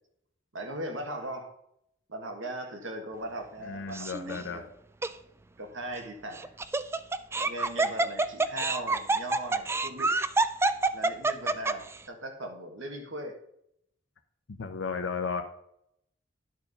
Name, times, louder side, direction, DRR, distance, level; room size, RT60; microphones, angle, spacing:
voice 1, 0.5-1.6 2.1-4.7 5.6-6.5 7.3-10.2 10.9-13.4, right 1 dB, 80° right, 4 dB, 1.6 m, -39 dB
voice 2, 3.6-4.6 14.6-15.4, left 5 dB, 80° left, 4 dB, 0.8 m, -34 dB
Laughter, 3.9-4.4 5.0-5.1 6.3-11.9, right 3 dB, 15° right, 0.3 m, -27 dB
10.5 x 4.7 x 5.3 m, 0.74 s
head